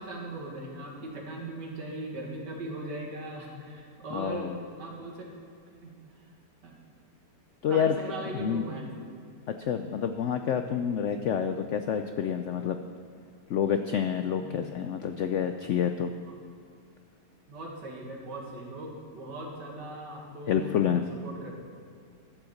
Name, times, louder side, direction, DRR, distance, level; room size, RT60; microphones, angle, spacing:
voice 1, 0.0-5.3 5.8-5.9 6.6-6.8 7.7-8.8 14.4-14.6 16.3-16.4 17.5-21.5, right 2 dB, 85° right, 0 dB, 2.5 m, -39 dB
voice 2, 4.1-4.6 7.6-8.0 8.4-8.6 9.5-12.8 13.5-16.1 20.5-21.0, left 8 dB, 80° left, 7 dB, 0.6 m, -28 dB
12.0 x 7.9 x 7.1 m, 2.3 s
omnidirectional pair, 1.8 m